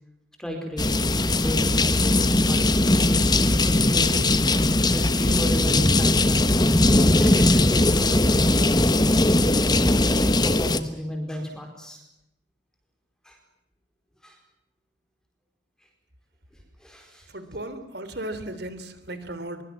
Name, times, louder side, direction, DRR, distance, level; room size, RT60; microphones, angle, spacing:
voice 1, 0.4-1.0 1.3-4.2 4.9-6.5 7.2-9.2 9.5-10.0 10.4-12.0 13.2-13.4 14.2-14.4 16.5-17.3, equal, 5° left, 3 dB, 4.5 m, -34 dB
sound 1, 0.8-10.8, left 2 dB, 20° left, 1.2 m, -20 dB
voice 2, 17.3-19.6, right 1 dB, 55° right, 12 dB, 3.4 m, -35 dB
23.5 x 23.0 x 7.5 m, 0.86 s
head